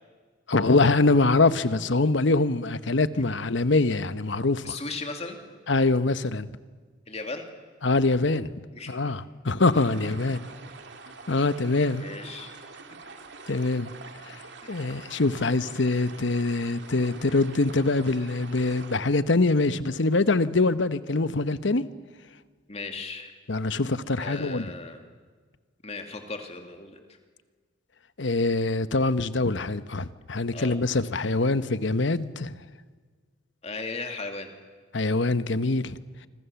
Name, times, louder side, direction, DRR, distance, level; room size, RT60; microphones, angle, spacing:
voice 1, 0.5-4.8 5.7-6.5 7.8-8.5 8.9-10.4 11.3-12.0 13.5-13.9 14.2-14.4 14.7-21.9 23.5-24.7 28.2-32.6 34.9-36.0, left 3 dB, 65° left, 1.0 m, -24 dB
voice 2, 4.6-5.4 7.1-7.5 8.7-9.0 10.4-10.5 12.0-12.5 22.7-23.3 24.2-25.0 25.8-27.0 30.5-30.7 33.6-34.5, left 3 dB, 30° left, 2.6 m, -36 dB
sound 1, 9.7-19.0, right 4 dB, 60° right, 2.3 m, -45 dB
26.5 x 26.0 x 7.1 m
head